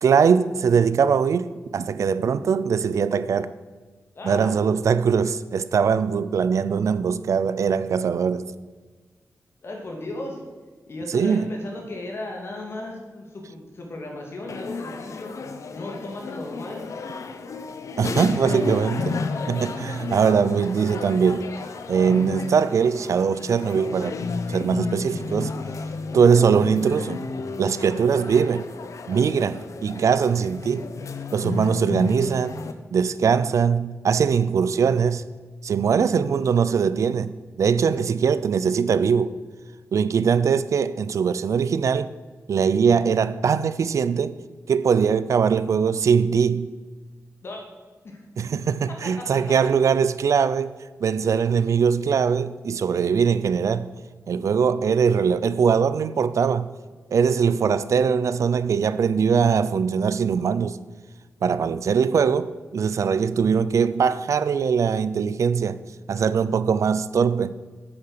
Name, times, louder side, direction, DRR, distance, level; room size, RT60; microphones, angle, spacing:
voice 1, 0.0-3.5 4.2-8.5 11.1-11.5 18.0-19.2 19.5-21.5 21.9-24.2 24.5-25.5 26.1-27.2 27.6-28.7 29.1-30.9 31.3-32.6 32.9-35.2 35.6-39.3 39.9-42.1 42.5-44.4 44.7-46.7 48.4-50.7 51.0-53.9 54.3-56.7 57.1-60.8 61.4-65.8 66.1-67.5, right 6 dB, 70° right, 0.5 m, -21 dB
voice 2, 4.1-4.5 9.6-10.4 10.9-15.4 15.7-16.9 47.4-47.7 48.0-48.2 48.9-49.2, left 2 dB, 50° left, 2.7 m, -36 dB
sound 1, 14.5-32.7, left 4 dB, 70° left, 0.9 m, -32 dB
9.8 x 8.7 x 6.7 m
wide cardioid pair, 165°, 5 cm